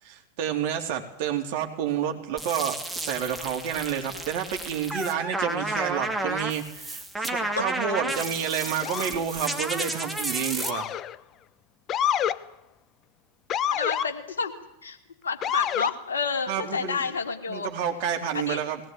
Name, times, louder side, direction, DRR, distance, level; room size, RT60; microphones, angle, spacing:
voice 1, 0.0-10.9 16.5-17.0 17.5-18.8, right 8 dB, 45° right, 4 dB, 3.8 m, -29 dB
sound 1, 2.4-10.7, right 2 dB, 5° right, 2.6 m, -32 dB
Motor vehicle (road) / Siren, 8.8-9.2 10.6-11.2 11.9-12.4 13.5-14.1 15.4-16.0, left 10 dB, 30° left, 0.9 m, -27 dB
voice 2, 13.7-14.5 14.8-15.0 15.2-17.7 18.3-18.6, left 5 dB, 70° left, 6 dB, 2.9 m, -30 dB
20.5 x 19.0 x 9.4 m, 0.81 s
figure-of-eight pair, 90°, 0 cm